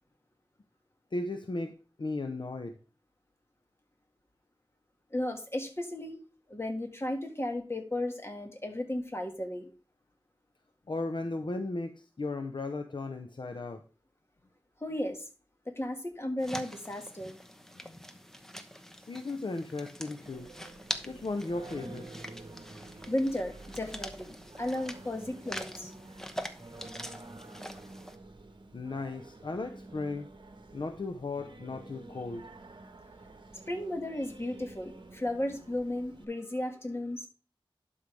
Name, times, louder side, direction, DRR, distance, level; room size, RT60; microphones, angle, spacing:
voice 1, 1.1-1.7 2.0-2.8 10.9-13.8 17.8-18.0 19.0-20.5 21.0-22.1 28.7-30.3 30.7-32.5, left 2 dB, 55° left, 6 dB, 0.8 m, -36 dB
voice 2, 5.1-6.2 6.5-9.7 14.8-15.3 15.7-17.4 23.1-25.9 33.7-37.3, left 1 dB, 25° left, 4 dB, 1.8 m, -34 dB
sound 1, 16.4-28.2, equal, 5° left, 1.0 m, -44 dB
Singing, 20.2-36.2, right 2 dB, 55° right, 1.1 m, -50 dB
11.5 x 5.6 x 3.4 m, 0.36 s
wide cardioid pair, 75°, 10 cm